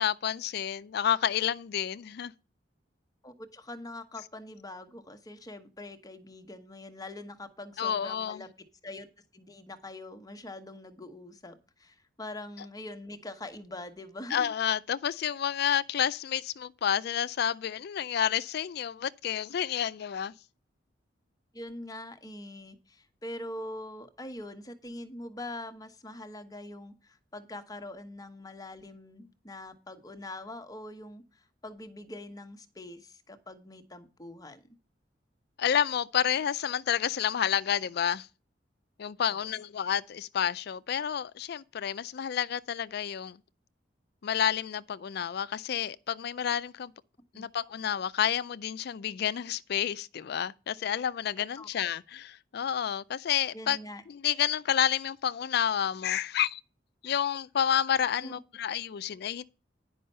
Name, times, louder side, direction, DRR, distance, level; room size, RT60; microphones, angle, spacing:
voice 1, 0.0-2.3 7.8-8.4 14.3-20.3 35.6-38.3 39.0-43.4 44.2-46.9 47.4-53.8 54.1-56.6 57.0-59.4, left 9 dB, 60° left, 0.4 m, -30 dB
voice 2, 3.2-8.5 8.8-9.1 9.3-14.5 21.5-34.6 47.3-47.5 51.4-51.9 53.5-54.0 58.2-58.4, left 1 dB, 20° left, 1.1 m, -43 dB
10.0 x 5.4 x 5.4 m
head